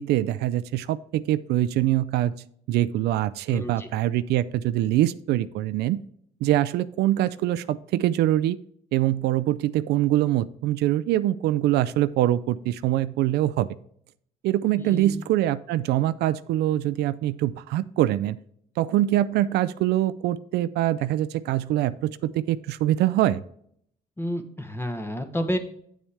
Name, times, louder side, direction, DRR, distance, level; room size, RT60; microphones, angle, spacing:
voice 1, 0.0-2.3 2.7-6.0 6.4-8.6 8.9-13.7 14.4-18.4 18.8-23.4, right 14 dB, 75° right, 15 dB, 0.4 m, -24 dB
voice 2, 3.5-3.9 14.8-15.1 24.2-25.6, equal, 15° left, 6 dB, 1.0 m, -30 dB
8.4 x 7.2 x 3.4 m, 0.66 s
cardioid pair, 110°, 17 cm